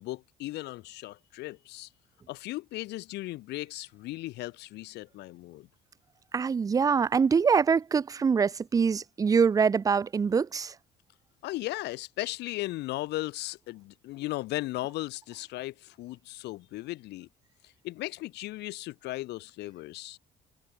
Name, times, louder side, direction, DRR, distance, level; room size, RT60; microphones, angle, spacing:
voice 1, 0.0-1.9 2.3-5.7 11.4-17.3 17.8-20.2, left 18 dB, 85° left, 5.0 m, -36 dB
voice 2, 6.3-10.7, right 6 dB, 20° right, 0.4 m, -24 dB
cardioid pair, 110°, 17 cm